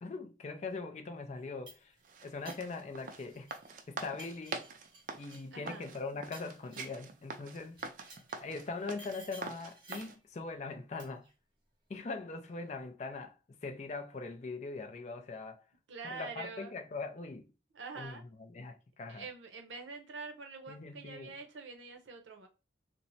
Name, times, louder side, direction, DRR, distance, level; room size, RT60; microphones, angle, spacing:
voice 1, 0.0-1.9 2.2-3.6 3.9-4.6 5.2-7.8 8.4-11.3 11.9-15.6 16.0-17.5 18.0-19.3 20.7-21.3, left 3 dB, 35° left, 0.3 m, -41 dB
sound 1, 1.3-3.7 4.0-7.1 7.7-8.5 9.0-10.2 11.0-11.3, right 2 dB, 25° right, 0.7 m, -56 dB
sound 2, 2.0-10.1, right 4 dB, 45° right, 0.3 m, -44 dB
voice 2, 5.5-5.9 15.9-16.8 17.7-18.3 19.1-22.5, right 4 dB, 85° right, 0.6 m, -45 dB
3.0 x 2.0 x 2.6 m
head